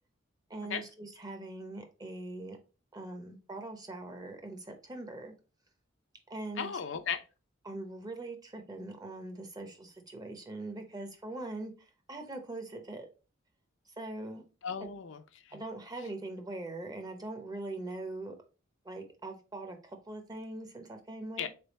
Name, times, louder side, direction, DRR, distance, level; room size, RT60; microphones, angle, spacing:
voice 1, 0.5-2.6 2.9-5.3 6.3-6.7 7.6-13.1 14.0-14.4 15.5-18.3 18.8-21.5, right 2 dB, 20° right, 0.7 m, -42 dB
voice 2, 6.6-7.2 14.6-15.6 21.4-21.5, left 7 dB, 65° left, 0.5 m, -36 dB
3.7 x 3.4 x 4.0 m
head